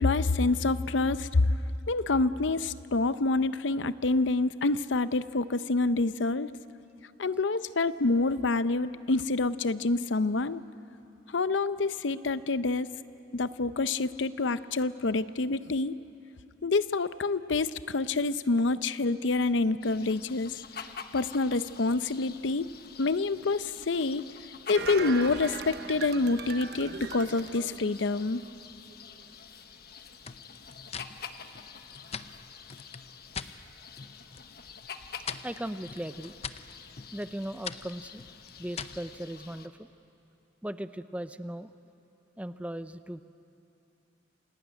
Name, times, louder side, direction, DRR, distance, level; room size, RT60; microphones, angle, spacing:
voice 1, 0.0-1.5 1.9-6.5 7.2-10.6 11.3-12.9 13.3-16.0 16.6-20.5 20.8-22.7 23.0-24.2 24.7-28.4, left 3 dB, 80° left, 14 dB, 0.7 m, -27 dB
sound 1, 19.8-39.7, left 6 dB, 55° left, 1.2 m, -47 dB
sound 2, 24.7-28.5 28.9-29.0, right 4 dB, 60° right, 1.0 m, -39 dB
sound 3, 30.2-33.6 33.9-34.5 34.8-39.1, left 6 dB, 35° left, 0.7 m, -42 dB
voice 2, 35.4-36.3 37.1-38.2 38.6-39.9 40.6-41.7 42.4-43.2, right 1 dB, 5° right, 11 dB, 0.6 m, -37 dB
28.0 x 18.5 x 9.5 m, 2.8 s
head